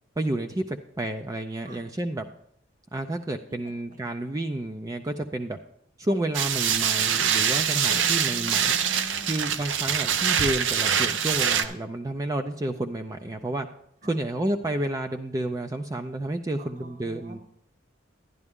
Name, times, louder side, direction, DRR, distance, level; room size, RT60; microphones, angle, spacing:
voice 1, 0.2-2.3 2.9-5.6 6.0-8.7 9.3-13.7 14.0-17.4, right 1 dB, 20° right, 5 dB, 0.4 m, -30 dB
sound 1, 6.3-11.6, right 8 dB, 85° right, 0.7 m, -24 dB
voice 2, 7.9-9.3 14.0-14.1 16.6-17.4, right 1 dB, 40° right, 6 dB, 1.3 m, -45 dB
11.0 x 11.0 x 3.6 m, 0.72 s
head